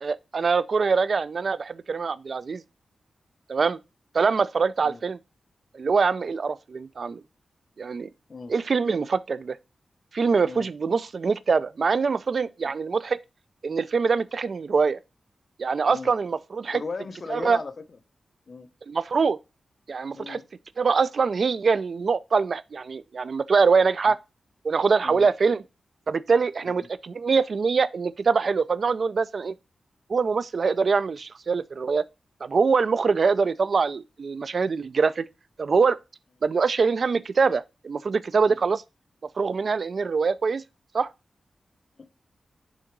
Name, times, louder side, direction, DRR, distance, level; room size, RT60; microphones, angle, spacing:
voice 1, 0.0-2.6 3.5-3.8 4.1-5.2 5.7-7.2 7.8-8.1 8.5-9.6 10.1-13.2 13.6-15.0 15.6-16.8 17.3-17.6 18.9-19.4 19.9-20.4 20.8-24.2 24.6-25.6 26.1-29.5 30.1-32.0 32.4-35.2 35.6-36.0 36.4-38.8 39.4-40.6 40.9-41.1, right 5 dB, 55° right, 0.3 m, -24 dB
voice 2, 16.7-17.7 18.5-18.7 20.1-20.5 25.0-25.3 26.6-26.7 38.5-38.6 42.0-42.2, left 4 dB, 45° left, 0.7 m, -37 dB
6.3 x 3.8 x 4.5 m
wide cardioid pair, 120°, 0 cm